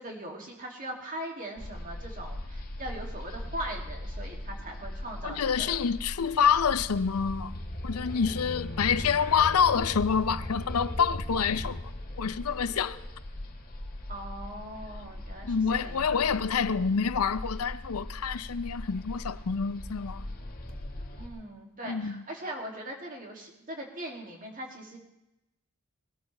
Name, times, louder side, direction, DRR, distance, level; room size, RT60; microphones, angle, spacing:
voice 1, 0.0-5.8 14.1-16.5 21.2-25.0, right 1 dB, 40° right, 2.6 m, -40 dB
sound 1, 1.6-21.3, left 1 dB, 45° left, 1.8 m, -40 dB
voice 2, 5.2-7.5 7.8-11.8 12.2-13.0 15.4-20.2 21.9-22.2, left 6 dB, 90° left, 0.6 m, -27 dB
sound 2, 6.4-11.9, equal, 60° left, 1.6 m, -39 dB
21.0 x 13.0 x 3.4 m
head